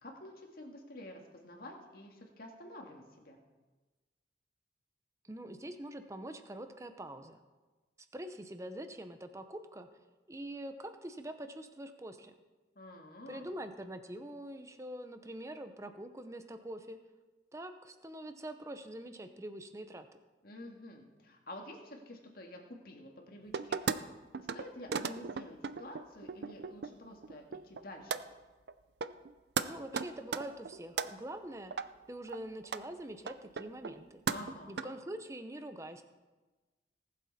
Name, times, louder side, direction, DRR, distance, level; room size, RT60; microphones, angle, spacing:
voice 1, 0.0-3.4 12.8-13.5 20.4-23.8 24.4-28.2 34.3-34.9, left 1 dB, 55° left, 1 dB, 2.0 m, -49 dB
voice 2, 5.2-7.4 8.1-9.9 10.3-12.3 13.3-17.0 17.5-20.1 29.7-31.7 32.1-34.2 34.7-36.0, right 1 dB, 15° right, 8 dB, 0.7 m, -44 dB
sound 1, 23.5-24.0 24.3-24.6 24.9-26.9 27.2-27.8 28.1-28.2 28.7-28.8 29.0-29.3 29.6-29.7 29.9-31.1 31.7-31.8 32.3-32.4 32.6-32.8 33.3-34.0 34.3-34.8, right 5 dB, 65° right, 0.5 m, -35 dB
19.0 x 7.6 x 4.2 m, 1.2 s
head